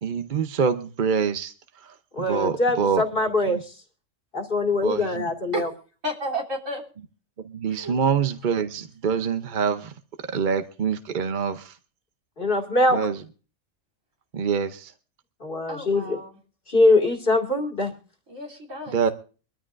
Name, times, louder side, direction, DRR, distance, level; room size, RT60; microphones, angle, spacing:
voice 1, 0.0-3.0 3.5-3.6 4.8-5.3 7.4-9.9 10.3-11.8 12.9-13.2 14.3-14.9 18.9-19.1, right 6 dB, 45° right, 9 dB, 0.8 m, -26 dB
voice 2, 2.1-3.6 4.3-5.7 12.4-13.0 15.4-16.2 16.7-17.9, left 2 dB, 45° left, 4 dB, 2.2 m, -22 dB
voice 3, 6.0-6.8 7.7-8.0 15.7-16.4 18.3-19.0, equal, 90° right, 2 dB, 3.7 m, -32 dB
23.5 x 13.5 x 2.5 m, 0.37 s
omnidirectional pair, 1.3 m